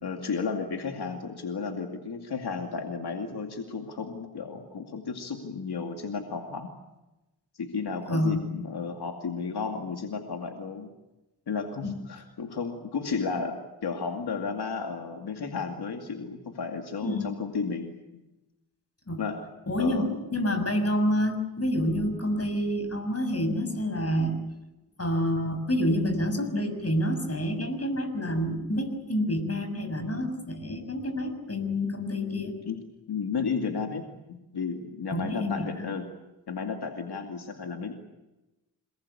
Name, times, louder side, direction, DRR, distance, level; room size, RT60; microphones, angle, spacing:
voice 1, 0.0-6.7 7.6-10.9 11.5-18.2 19.2-19.4 19.8-20.1 32.7-32.8 33.1-36.1 36.5-37.9, left 5 dB, 90° left, 3 dB, 2.5 m, -33 dB
voice 2, 8.1-8.5 11.8-11.9 17.0-17.3 19.1-19.2 19.7-24.4 25.0-32.6 35.1-35.9, equal, 40° left, 7 dB, 6.7 m, -28 dB
27.5 x 20.5 x 8.5 m, 1.0 s
cardioid pair, 65°, 38 cm